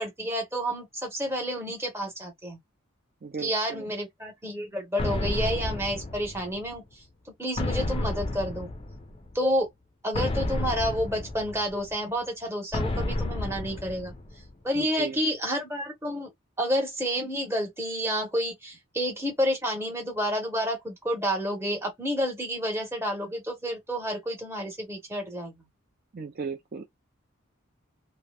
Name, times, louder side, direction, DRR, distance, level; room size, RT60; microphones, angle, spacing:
voice 1, 0.0-2.6 3.4-7.0 7.4-8.7 9.3-9.7 10.0-14.1 14.6-16.3 16.6-25.6, equal, 10° right, 1.0 m, -30 dB
voice 2, 3.2-3.9 14.7-15.2 26.1-26.8, right 5 dB, 45° right, 0.4 m, -36 dB
sound 1, 5.0-6.8 7.6-9.3 10.1-11.9 12.7-14.5, left 2 dB, 25° left, 0.5 m, -31 dB
2.9 x 2.0 x 2.3 m
head